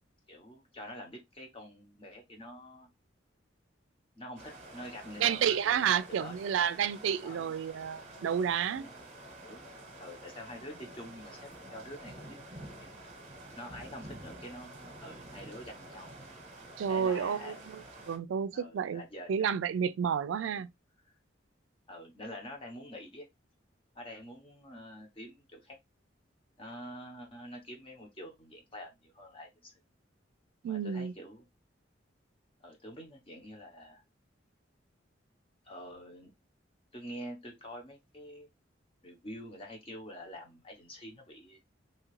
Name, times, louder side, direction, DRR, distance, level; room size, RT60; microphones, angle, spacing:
voice 1, 0.3-2.9 4.2-6.6 7.2-7.6 8.7-9.1 9.4-9.7 10.0-13.0 13.6-16.1 16.8-17.6 18.5-19.5 20.4-20.6 21.0-21.1 21.9-23.3 23.9-25.8 26.6-29.8 30.6-31.5 32.6-34.0 35.6-36.3 36.9-38.5 39.0-41.6, equal, 30° left, 0.8 m, -47 dB
sound 1, 4.4-18.2, right 1 dB, 35° right, 0.8 m, -49 dB
voice 2, 5.2-8.9 16.8-17.5 18.1-19.0 19.3-20.7 30.6-31.1, right 8 dB, 85° right, 0.3 m, -30 dB
2.8 x 2.4 x 3.1 m
head